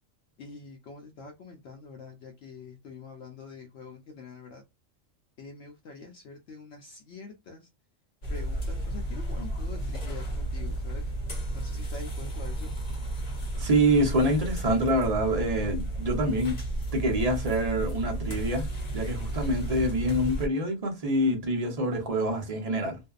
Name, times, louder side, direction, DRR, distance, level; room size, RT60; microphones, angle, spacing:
voice 1, 0.4-4.6 5.4-7.7 8.3-11.0 11.5-12.7, left 4 dB, 65° left, 0.8 m, -45 dB
sound 1, 8.2-20.5, right 1 dB, 40° left, 0.8 m, -33 dB
voice 2, 13.5-16.6 16.9-18.7 18.9-23.0, right 1 dB, 35° right, 0.7 m, -26 dB
2.6 x 2.2 x 2.3 m
omnidirectional pair, 1.3 m